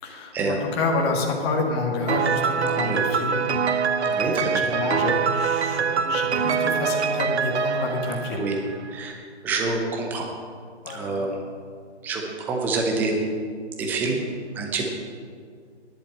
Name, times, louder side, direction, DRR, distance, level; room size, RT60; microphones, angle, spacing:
voice 1, 0.0-8.4 10.8-11.2, left 3 dB, 25° left, 0 dB, 1.7 m, -28 dB
Piano, 2.1-8.9, right 6 dB, 70° right, 0.8 m, -24 dB
voice 2, 4.1-4.7 8.3-8.6 8.9-9.2 9.4-10.3 10.9-11.4 12.0-13.2 13.8-14.2 14.5-14.8, right 3 dB, 5° right, 1 dB, 0.7 m, -27 dB
11.0 x 8.6 x 8.2 m, 2.1 s
figure-of-eight pair, 150°, 34 cm